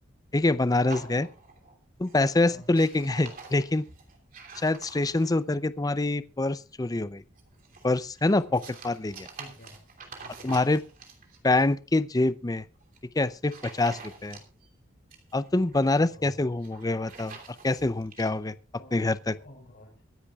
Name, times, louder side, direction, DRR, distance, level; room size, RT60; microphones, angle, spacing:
voice 1, 0.3-1.3 2.0-3.8 4.6-7.2 7.8-9.3 10.4-10.8 11.4-12.6 13.1-13.9 14.2-14.4 15.3-17.4 17.6-18.5 18.9-19.3, left 2 dB, 20° left, 0.5 m, -25 dB
sound 1, 0.9-1.8 2.0-2.3 2.6-5.5 7.4-11.4 12.8-13.0 13.4-14.7 14.9-15.9 16.5-18.3, right 4 dB, 45° right, 2.9 m, -47 dB
voice 2, 8.4-8.8 9.3-9.8 10.1-10.5 13.8-14.0 15.9-16.4 18.7-19.0 19.3-19.9, equal, 55° left, 4.8 m, -50 dB
23.5 x 10.0 x 2.4 m
head